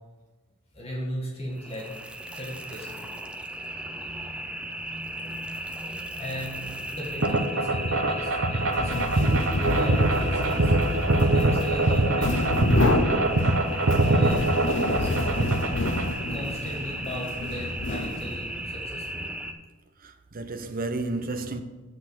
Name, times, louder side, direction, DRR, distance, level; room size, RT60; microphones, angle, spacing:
voice 1, 0.7-1.9 2.3-3.1 6.2-10.7 11.2-12.5 13.7-15.6 16.2-19.3, equal, 30° left, 1.9 m, -37 dB
sound 1, 1.5-19.5, right 1 dB, 5° right, 0.5 m, -36 dB
sound 2, 7.2-16.1, right 2 dB, 60° right, 1.0 m, -23 dB
sound 3, 8.6-18.6, left 2 dB, 60° left, 0.9 m, -29 dB
voice 2, 20.0-21.6, right 2 dB, 40° right, 0.7 m, -32 dB
7.9 x 6.3 x 6.3 m
head